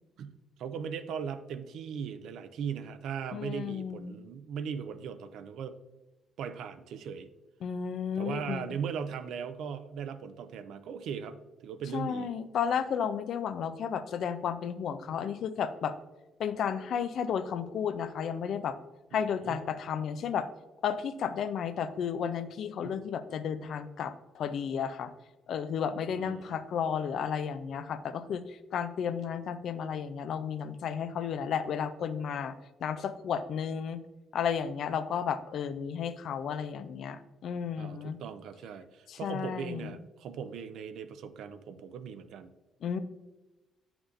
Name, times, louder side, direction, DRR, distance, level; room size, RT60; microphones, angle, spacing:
voice 1, 0.6-5.8 6.4-7.3 8.2-12.3 19.1-19.6 22.8-23.0 26.1-26.6 37.8-42.5, right 7 dB, 80° right, 11 dB, 0.5 m, -39 dB
voice 2, 3.3-4.2 7.6-8.7 11.9-15.9 16.4-18.8 19.1-20.5 20.8-25.1 25.5-32.5 32.8-34.0 34.3-38.2 39.1-39.9 42.8-43.0, left 7 dB, 70° left, 12 dB, 0.5 m, -33 dB
8.0 x 6.0 x 2.6 m, 1.1 s
cardioid pair, 90°, 0 cm